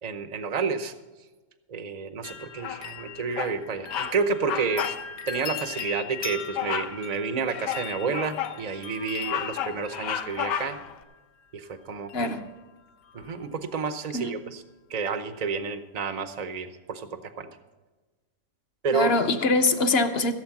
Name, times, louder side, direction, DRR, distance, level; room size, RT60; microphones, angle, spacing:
voice 1, 0.0-0.9 1.7-5.0 5.3-10.8 11.5-12.3 13.1-14.6 14.9-17.5 18.8-19.2, right 5 dB, 45° right, 10 dB, 0.5 m, -30 dB
sound 1, 2.2-11.2 12.1-12.6 12.9-13.4 13.8-13.9, left 8 dB, 65° left, 1.3 m, -40 dB
Bird vocalization bird call bird song, 2.6-3.0 3.4-3.6 3.9-4.2 4.4-5.0 5.3-5.5 6.6-7.0 7.5-8.6 9.0-10.9, left 9 dB, 90° left, 1.4 m, -32 dB
voice 2, 12.1-12.4 14.1-14.3 18.9-20.3, left 3 dB, 50° left, 8 dB, 0.8 m, -23 dB
15.5 x 7.4 x 5.9 m, 1.2 s
omnidirectional pair, 1.8 m